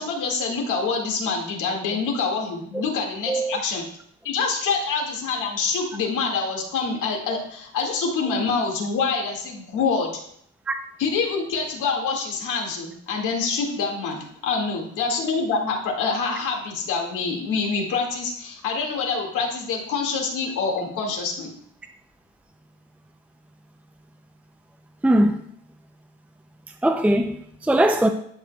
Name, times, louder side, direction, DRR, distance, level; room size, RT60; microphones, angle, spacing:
voice 1, 0.0-3.8 4.2-10.1 11.0-21.5, left 4 dB, 85° left, 2.2 m, -26 dB
voice 2, 3.3-3.6 10.7-10.8 25.0-25.4 26.8-28.1, right 1 dB, 5° right, 0.5 m, -20 dB
11.0 x 6.5 x 2.3 m
cardioid pair, 90°, 30 cm